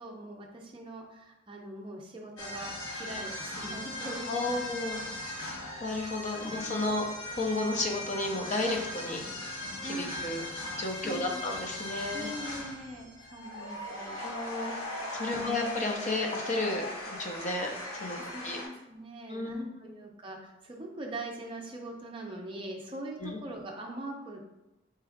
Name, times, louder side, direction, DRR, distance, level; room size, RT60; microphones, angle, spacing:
voice 1, 0.0-4.6 5.0-5.4 6.5-6.6 9.8-10.1 11.0-11.4 12.1-14.2 15.3-15.6 18.2-24.4, right 1 dB, 25° right, 0 dB, 0.5 m, -42 dB
sound 1, 2.4-18.7, left 1 dB, 85° left, 1.0 m, -39 dB
voice 2, 4.3-5.0 5.8-7.0 7.4-9.2 9.8-10.5 10.8-12.3 14.2-14.8 15.1-16.9 17.2-18.2 18.4-18.6 19.3-19.6 23.2-23.4, left 2 dB, 35° left, 2 dB, 0.5 m, -32 dB
4.4 x 2.4 x 3.4 m, 1.0 s
head